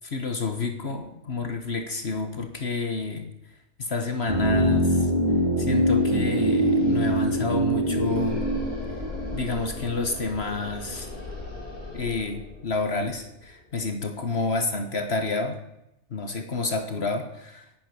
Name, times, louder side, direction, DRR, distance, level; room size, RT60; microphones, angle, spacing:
voice 1, 0.0-3.3 3.8-5.1 5.6-8.4 9.3-11.1 11.9-15.6 16.1-17.7, left 3 dB, 55° left, 6 dB, 1.6 m, -29 dB
sound 1, 4.3-10.3 10.5-10.6, equal, 20° right, 3.0 m, -24 dB
sound 2, 5.5-5.6 5.8-14.6, left 2 dB, 35° left, 5.6 m, -39 dB
11.5 x 9.6 x 9.6 m, 0.86 s
omnidirectional pair, 1.3 m